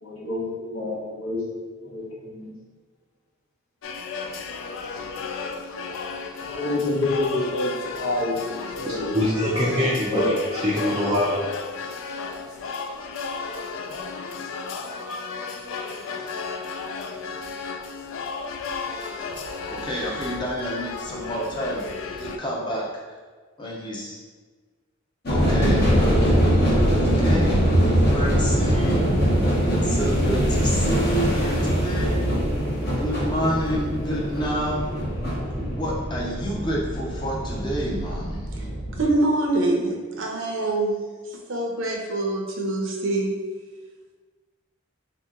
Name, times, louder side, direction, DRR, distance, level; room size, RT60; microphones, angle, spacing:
voice 1, 0.0-1.4 1.8-2.5 6.5-9.1 9.5-10.4, left 2 dB, 85° left, 1.1 m, -28 dB
sound 1, 3.8-22.4, left 4 dB, 70° left, 0.3 m, -33 dB
voice 2, 9.1-10.3 10.6-11.4, equal, 20° right, 0.5 m, -23 dB
voice 3, 19.7-21.8 22.2-23.2 23.6-24.2 25.3-25.9 26.9-27.6 28.1-29.1 29.6-32.2 32.9-34.9 35.6-38.5, equal, 20° left, 0.6 m, -29 dB
sound 2, 25.3-39.0, equal, 50° left, 0.9 m, -22 dB
voice 4, 39.0-41.0 41.5-43.3, right 2 dB, 65° right, 0.7 m, -24 dB
3.5 x 2.8 x 3.7 m
head